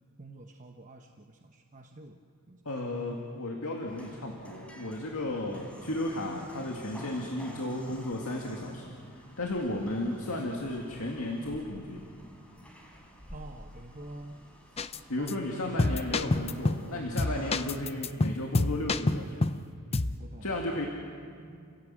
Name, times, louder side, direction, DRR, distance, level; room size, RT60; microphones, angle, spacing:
voice 1, 0.2-2.2 2.5-2.7 13.3-15.3 19.9-20.6, right 2 dB, 35° right, 3 dB, 1.0 m, -48 dB
voice 2, 2.7-12.1 15.1-19.5 20.4-20.9, left 1 dB, 70° left, 0 dB, 2.2 m, -34 dB
sound 1, 3.9-17.7, equal, 5° left, 3.7 m, -51 dB
sound 2, 14.8-15.0 15.3-15.4 15.8-16.9 17.2-19.6 19.9-20.2, left 2 dB, 25° left, 0.6 m, -28 dB
30.0 x 17.0 x 7.6 m, 2.3 s
head